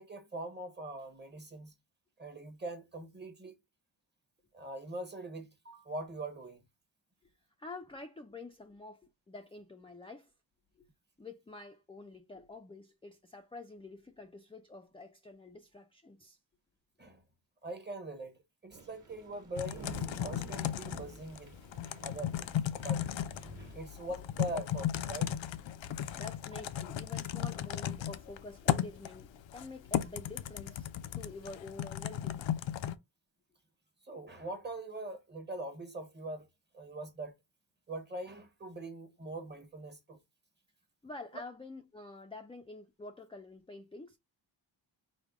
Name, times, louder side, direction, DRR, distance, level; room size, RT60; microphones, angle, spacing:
voice 1, 0.0-1.7 2.2-3.6 4.5-6.6 17.0-17.2 17.6-21.5 22.0-22.5 22.8-23.1 23.6-25.4 34.0-36.5 36.7-37.3 37.9-40.2, right 1 dB, 25° right, 0.9 m, -42 dB
voice 2, 7.6-10.3 10.8-10.9 11.2-16.4 23.6-23.7 26.1-30.9 31.2-32.6 41.0-44.2, left 3 dB, 15° left, 0.4 m, -48 dB
sound 1, 18.7-23.8, right 2 dB, 40° right, 1.2 m, -50 dB
Typing, 19.6-33.0, left 10 dB, 80° left, 0.6 m, -36 dB
5.1 x 2.1 x 3.6 m
wide cardioid pair, 140°, 45 cm